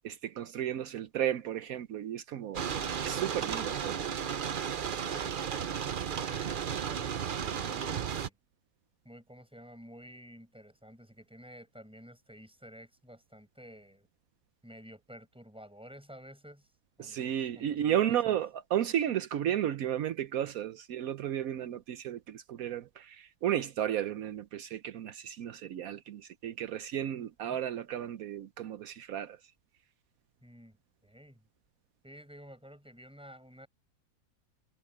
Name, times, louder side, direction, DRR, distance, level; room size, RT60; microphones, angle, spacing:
voice 1, 0.0-2.6 3.0-4.3 17.0-29.4, right 10 dB, 75° right, 1.1 m, -33 dB
sound 1, 2.5-8.3, right 8 dB, 45° right, 0.7 m, -34 dB
voice 2, 5.0-8.4 9.0-14.1 14.6-16.7 17.0-18.4 27.4-27.6 30.4-31.4 32.0-33.7, equal, 5° right, 5.7 m, -52 dB
omnidirectional pair, 1.5 m